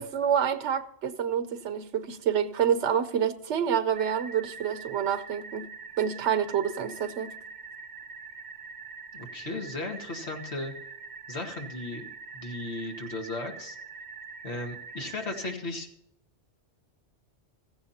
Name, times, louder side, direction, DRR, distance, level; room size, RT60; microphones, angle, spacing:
voice 1, 0.0-5.6 6.0-7.3, right 8 dB, 85° right, 1.1 m, -27 dB
sound 1, 3.9-15.5, right 5 dB, 50° right, 1.6 m, -44 dB
voice 2, 9.1-10.7 11.3-13.8 14.4-15.9, left 2 dB, 70° left, 2.2 m, -36 dB
16.0 x 15.5 x 2.8 m
omnidirectional pair, 1.2 m